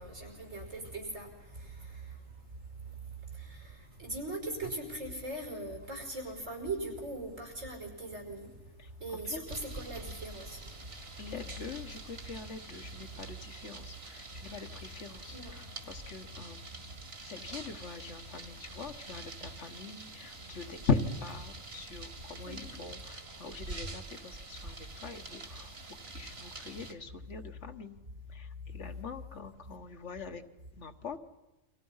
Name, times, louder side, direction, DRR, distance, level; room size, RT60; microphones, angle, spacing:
voice 1, 0.0-2.0 3.3-8.5 9.0-10.6 15.3-15.5 22.5-22.7, right 2 dB, 80° right, 3 dB, 6.1 m, -40 dB
sound 1, 9.5-26.9, right 2 dB, 50° right, 2.4 m, -46 dB
voice 2, 11.2-16.7 17.2-28.0 28.3-30.4 30.8-31.2, left 4 dB, 65° left, 7 dB, 1.6 m, -40 dB
29.5 x 25.0 x 5.6 m, 1.0 s
omnidirectional pair, 1.3 m